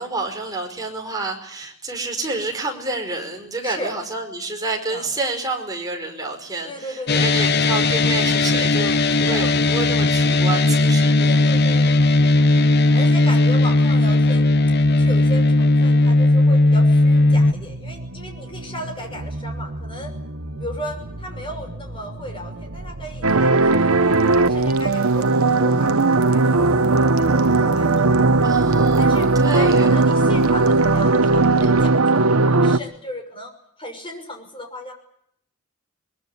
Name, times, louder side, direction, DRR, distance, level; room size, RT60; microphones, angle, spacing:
voice 1, 0.0-11.3 28.4-29.0 29.3-29.9, right 3 dB, 15° right, 2 dB, 5.0 m, -29 dB
voice 2, 3.6-3.9 4.9-5.1 6.6-7.8 9.2-9.5 11.2-12.5 12.9-14.6 14.9-20.1 20.6-23.9 24.5-28.1 29.0-33.5 33.8-34.9, equal, 25° left, 4 dB, 6.0 m, -35 dB
sound 1, 7.1-17.5, left 2 dB, 50° left, 1.0 m, -17 dB
sound 2, 17.2-31.9, right 1 dB, 65° right, 1.6 m, -35 dB
sound 3, 23.2-32.8, right 3 dB, 85° right, 1.1 m, -17 dB
22.0 x 21.5 x 9.7 m, 0.71 s
head